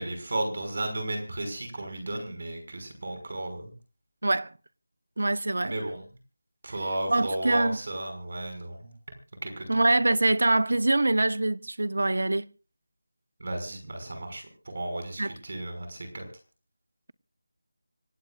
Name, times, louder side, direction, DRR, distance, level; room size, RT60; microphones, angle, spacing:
voice 1, 0.0-3.7 5.6-6.0 6.6-8.9 9.4-9.8 13.4-16.2, right 1 dB, 40° right, 5.9 m, -34 dB
voice 2, 4.2-4.5 5.2-5.7 7.1-7.8 9.7-12.5 15.2-15.3, right 2 dB, 65° right, 1.0 m, -24 dB
26.0 x 17.0 x 2.5 m
figure-of-eight pair, 180°, 0 cm